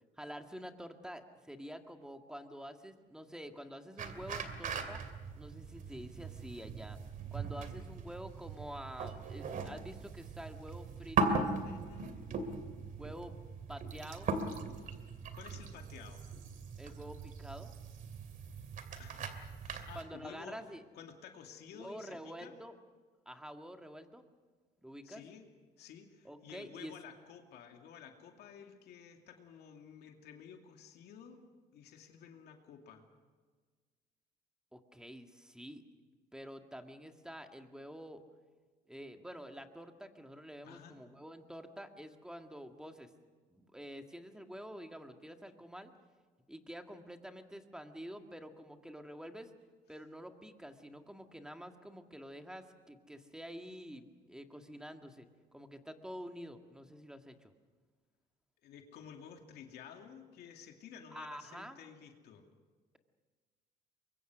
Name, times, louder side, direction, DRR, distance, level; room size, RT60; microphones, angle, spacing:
voice 1, 0.2-5.0 5.3-7.0 7.3-11.5 13.0-13.3 13.7-14.3 16.8-17.7 20.0-20.8 21.7-22.8 23.3-24.2 24.8-25.2 26.2-26.9 34.7-35.8 36.3-38.2 38.9-43.1 43.5-45.9 46.5-49.5 49.9-57.5 61.1-61.8, equal, 5° right, 5 dB, 1.9 m, -48 dB
sound 1, 4.0-20.0, right 4 dB, 55° right, 2.7 m, -39 dB
voice 2, 11.6-12.2 15.3-16.2 19.0-20.6 20.9-22.6 25.0-25.5 25.8-31.4 31.7-33.0 40.6-41.0 58.6-62.5, left 7 dB, 75° left, 3 dB, 2.6 m, -53 dB
24.0 x 22.5 x 6.2 m, 1.5 s
cardioid pair, 110°, 17 cm